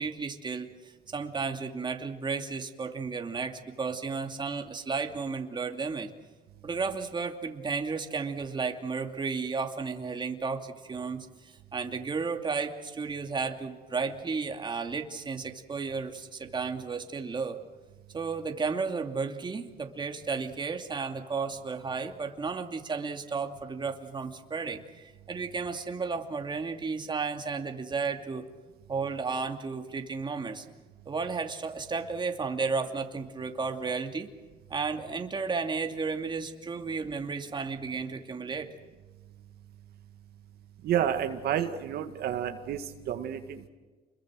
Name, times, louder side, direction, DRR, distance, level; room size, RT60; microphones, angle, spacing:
voice 1, 0.0-6.1 6.6-17.6 18.1-25.0 25.3-28.4 28.9-30.6 31.1-34.3 34.7-38.7, right 4 dB, 25° right, 5 dB, 2.7 m, -33 dB
voice 2, 40.8-43.7, right 9 dB, 70° right, 6 dB, 2.1 m, -30 dB
29.5 x 22.5 x 6.5 m, 1.3 s
cardioid pair, 110°, 17 cm